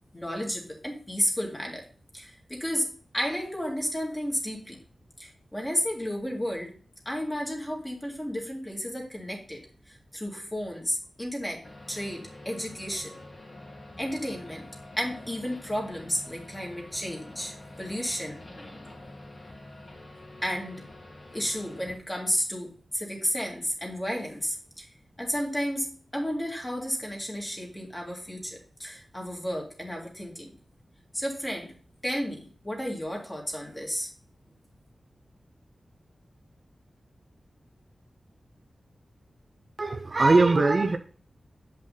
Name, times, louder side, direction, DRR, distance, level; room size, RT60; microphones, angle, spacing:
voice 1, 0.1-1.8 2.1-4.8 5.2-6.7 7.1-11.6 11.9-13.1 14.0-14.7 15.0-18.4 20.4-20.8 21.3-24.9 25.2-30.5 31.1-31.7 32.0-34.1, equal, 15° left, 2.2 m, -32 dB
sound 1, 11.6-21.9, left 1 dB, 40° left, 2.2 m, -46 dB
voice 2, 39.8-41.0, right 3 dB, 40° right, 0.5 m, -21 dB
8.0 x 5.5 x 3.9 m
wide cardioid pair, 135°, 0 cm